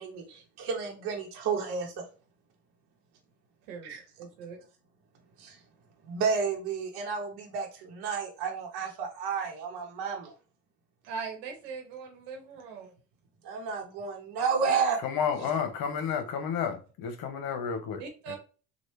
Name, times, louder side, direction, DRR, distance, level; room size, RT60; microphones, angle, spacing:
voice 1, 0.0-2.1 3.8-4.0 5.4-5.6 6.0-10.3 13.4-15.0 15.4-15.5, right 5 dB, 60° right, 1.1 m, -31 dB
voice 2, 3.7-4.6 11.0-12.9 18.0-18.4, right 5 dB, 90° right, 1.2 m, -41 dB
voice 3, 15.0-18.4, left 7 dB, 55° left, 0.9 m, -31 dB
3.2 x 2.4 x 3.2 m
supercardioid pair, 100°, 44 cm